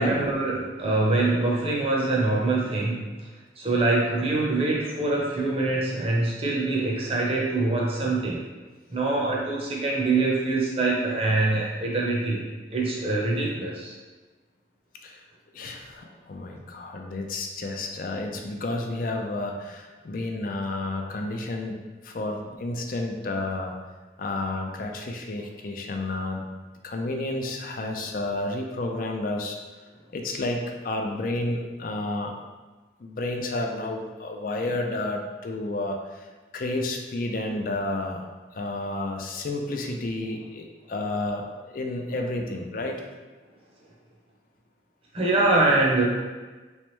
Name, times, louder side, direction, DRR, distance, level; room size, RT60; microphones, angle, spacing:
voice 1, 0.0-3.3 3.6-8.4 8.9-12.4 12.7-13.9 45.1-46.0, right 2 dB, 30° right, -3 dB, 0.7 m, -24 dB
voice 2, 15.5-23.8 24.2-26.4 26.8-29.6 30.1-32.4 33.0-36.3 36.5-38.2 38.5-43.0, left 2 dB, 50° left, 2 dB, 0.4 m, -31 dB
3.4 x 3.2 x 3.1 m, 1.3 s
head